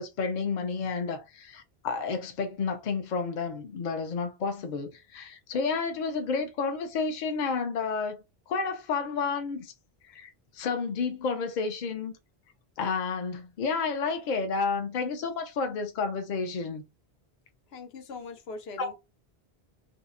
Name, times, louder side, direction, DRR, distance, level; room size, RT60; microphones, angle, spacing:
voice 1, 0.0-8.2 8.5-9.7 10.1-12.1 12.8-16.8 18.8-18.9, left 4 dB, 55° left, 0.6 m, -31 dB
voice 2, 17.7-18.9, left 3 dB, 85° left, 0.9 m, -41 dB
2.6 x 2.0 x 2.4 m
omnidirectional pair, 1.0 m